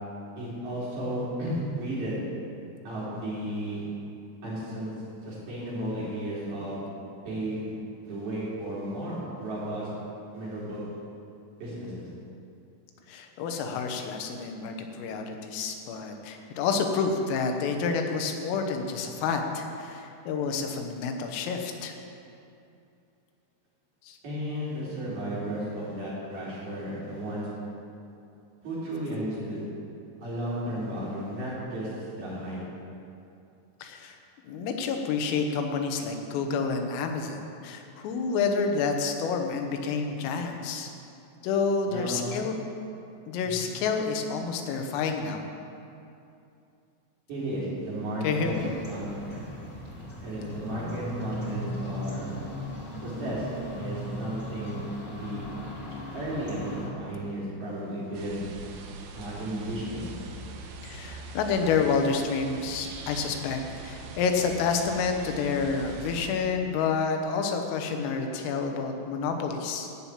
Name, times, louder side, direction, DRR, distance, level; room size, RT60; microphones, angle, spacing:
voice 1, 0.4-2.2 2.8-3.8 4.4-4.9 5.2-6.8 7.2-7.6 8.0-9.9 10.3-10.8 11.6-12.1 24.2-27.5 28.6-29.6 30.2-32.6 41.9-42.4 43.4-43.6 47.3-49.4 50.2-52.4 53.0-55.4 56.1-58.4 59.1-60.1, right 1 dB, 50° right, -9 dB, 5.5 m, -34 dB
voice 2, 13.1-21.9 24.0-24.2 33.8-34.2 34.4-40.9 41.4-42.6 43.3-45.5 48.2-48.7 60.8-69.9, left 5 dB, 90° left, 4 dB, 3.7 m, -29 dB
sound 1, 48.4-56.9, equal, 65° left, 0.7 m, -38 dB
sound 2, 58.1-66.3, right 4 dB, 80° right, 2.4 m, -42 dB
15.0 x 5.7 x 8.5 m, 2.6 s
omnidirectional pair, 5.7 m